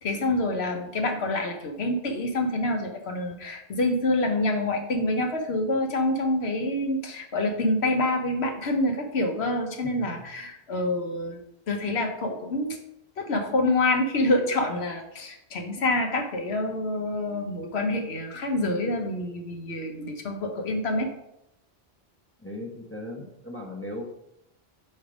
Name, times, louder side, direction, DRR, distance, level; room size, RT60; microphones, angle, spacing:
voice 1, 0.0-11.4 11.7-12.8 13.2-21.1, left 2 dB, 85° left, 4 dB, 1.2 m, -27 dB
voice 2, 22.4-24.1, left 1 dB, 15° left, -1 dB, 0.9 m, -38 dB
5.5 x 4.7 x 5.0 m, 0.83 s
omnidirectional pair, 1.1 m